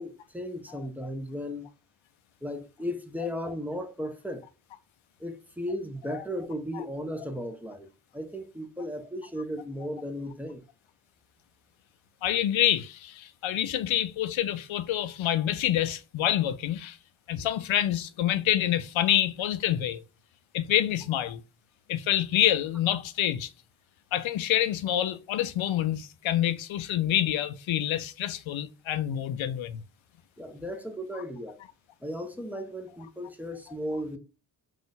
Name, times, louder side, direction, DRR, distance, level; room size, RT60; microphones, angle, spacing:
voice 1, 0.0-1.7 2.4-4.4 5.2-7.9 8.1-10.6 30.4-31.6 32.0-34.2, equal, 5° right, 0.9 m, -35 dB
voice 2, 12.2-17.0 17.3-20.0 20.5-21.4 21.9-23.5 24.1-29.8, left 11 dB, 75° left, 0.5 m, -27 dB
3.9 x 2.5 x 4.0 m
cardioid pair, 50°, 47 cm